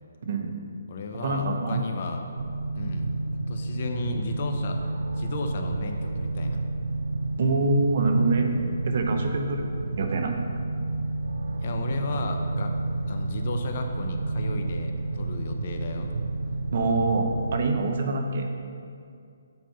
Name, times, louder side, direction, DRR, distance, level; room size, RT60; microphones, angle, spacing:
voice 1, 0.2-0.6 1.2-1.8 7.4-8.5 8.8-10.3 16.7-18.5, right 3 dB, 45° right, 4 dB, 0.8 m, -25 dB
voice 2, 0.9-2.2 2.7-3.1 3.5-4.8 5.1-6.6 11.6-12.7 13.1-16.1, left 4 dB, 35° left, 4 dB, 0.6 m, -34 dB
sound 1, 2.4-17.7, right 2 dB, 80° right, 0.5 m, -30 dB
8.4 x 4.5 x 5.7 m, 2.4 s
hypercardioid pair, 175°, 0 cm